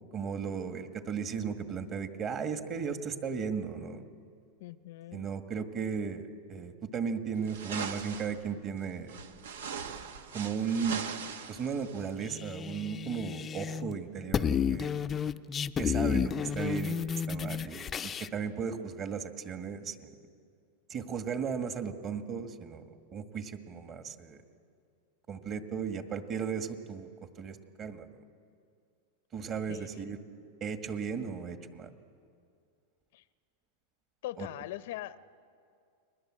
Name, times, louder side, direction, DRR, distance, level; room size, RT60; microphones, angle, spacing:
voice 1, 0.1-4.1 5.1-9.2 10.3-11.0 11.5-15.0 15.8-20.1 20.9-24.4 25.3-27.1 27.4-28.1 29.3-30.2 30.6-31.9 34.4-34.5, right 6 dB, 30° right, 7 dB, 1.8 m, -36 dB
voice 2, 4.6-5.3 29.7-30.2 33.1-33.2 34.2-35.2, left 14 dB, 65° left, 15 dB, 0.7 m, -41 dB
sound 1, 7.5-8.4 9.1-12.1, right 6 dB, 90° right, 1.6 m, -40 dB
sound 2, 12.2-13.9 14.2-18.3, left 7 dB, 20° left, 0.5 m, -32 dB
30.0 x 21.0 x 7.6 m, 2.4 s
supercardioid pair, 135°, 0 cm